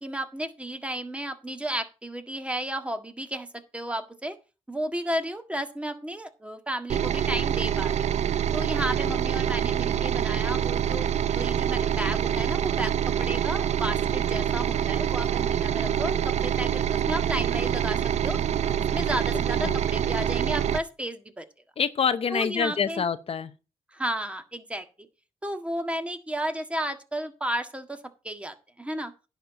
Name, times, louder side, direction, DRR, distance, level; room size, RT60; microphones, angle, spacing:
voice 1, 0.0-3.5 3.7-4.4 4.7-8.1 8.5-12.9 13.2-18.0 18.2-18.4 18.9-21.4 22.3-23.0 23.9-24.8 25.4-28.0 28.2-29.1, right 1 dB, 10° right, 1.6 m, -33 dB
sound 1, 6.9-20.8, right 9 dB, 70° right, 0.5 m, -26 dB
voice 2, 21.8-23.5, left 6 dB, 55° left, 0.7 m, -26 dB
10.5 x 4.5 x 7.9 m
cardioid pair, 85°, 12 cm